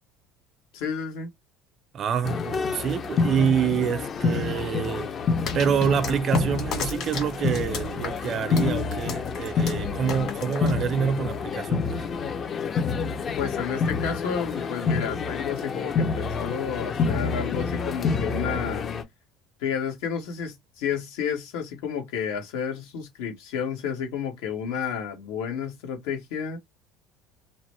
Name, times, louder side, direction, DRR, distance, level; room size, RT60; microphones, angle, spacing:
voice 1, 0.7-1.3 13.4-18.9 19.6-26.6, left 7 dB, 80° left, 1.4 m, -31 dB
voice 2, 1.9-5.1 5.5-12.1, right 7 dB, 40° right, 0.5 m, -26 dB
sound 1, 2.2-19.0, left 5 dB, 35° left, 0.5 m, -28 dB
sound 2, 5.4-11.2, left 5 dB, 50° left, 1.8 m, -35 dB
2.9 x 2.1 x 3.1 m
cardioid pair, 125°, 0 cm